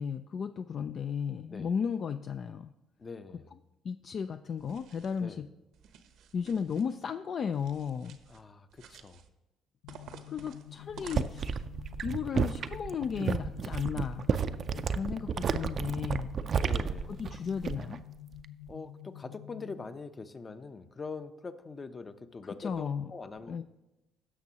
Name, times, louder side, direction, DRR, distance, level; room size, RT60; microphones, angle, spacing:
voice 1, 0.0-2.7 3.8-5.5 6.3-8.2 10.3-11.6 12.0-14.3 14.7-16.4 17.2-18.0 22.4-23.0 23.5-23.6, left 6 dB, 50° left, 9 dB, 0.3 m, -34 dB
voice 2, 3.0-3.5 5.2-5.4 8.3-9.2 16.6-17.2 18.7-23.6, left 4 dB, 30° left, 11 dB, 0.7 m, -43 dB
sound 1, 4.6-5.2 5.7-6.9 7.5-8.4 8.7-9.3 9.9-11.7, right 7 dB, 75° right, 0.8 m, -52 dB
sound 2, 9.8-19.8, left 12 dB, 90° left, 0.6 m, -49 dB
sound 3, 10.9-18.0 18.3-18.7, right 6 dB, 45° right, 0.4 m, -32 dB
17.0 x 6.0 x 2.9 m, 0.99 s
cardioid pair, 90°, 0 cm